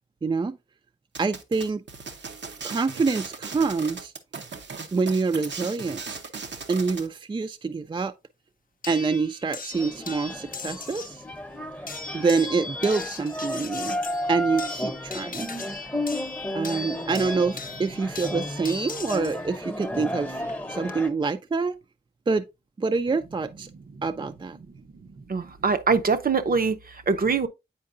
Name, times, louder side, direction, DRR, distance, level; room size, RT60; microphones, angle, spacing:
voice 1, 0.2-0.6 1.2-1.8 2.6-4.1 4.9-6.2 6.7-8.1 8.9-11.2 12.1-14.0 14.3-15.5 16.5-20.4 20.7-21.8 22.3-22.5 22.8-23.7 24.0-24.6, right 4 dB, 25° right, 0.4 m, -26 dB
sound 1, 1.2-7.1, right 5 dB, 90° right, 0.9 m, -38 dB
sound 2, 8.8-11.2 11.9-19.4 20.5-20.9, left 4 dB, 50° left, 0.6 m, -38 dB
sound 3, 9.7-21.1, left 1 dB, 10° left, 0.8 m, -33 dB
voice 2, 25.2-27.5, right 4 dB, 55° right, 0.7 m, -24 dB
8.6 x 4.5 x 2.5 m
wide cardioid pair, 70°, 18 cm